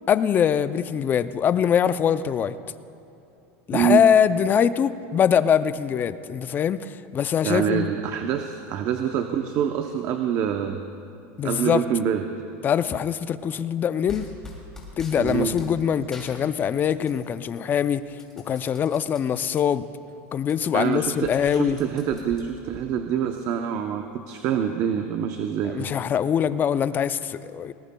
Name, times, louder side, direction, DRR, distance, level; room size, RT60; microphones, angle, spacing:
voice 1, 0.1-2.6 3.7-7.9 11.4-11.8 12.6-14.3 15.0-18.0 18.5-19.8 20.3-21.8 25.7-27.7, left 8 dB, 25° left, 14 dB, 0.4 m, -23 dB
voice 2, 3.7-4.0 7.4-10.8 11.4-12.2 15.2-15.6 20.7-25.9, right 8 dB, 45° right, 6 dB, 0.7 m, -26 dB
sound 1, 14.1-15.7 16.1-17.2 17.6-19.6 20.1-20.2 20.4-22.8, left 3 dB, 10° left, 2.7 m, -43 dB
21.5 x 20.0 x 2.2 m, 2.8 s
supercardioid pair, 135°, 7 cm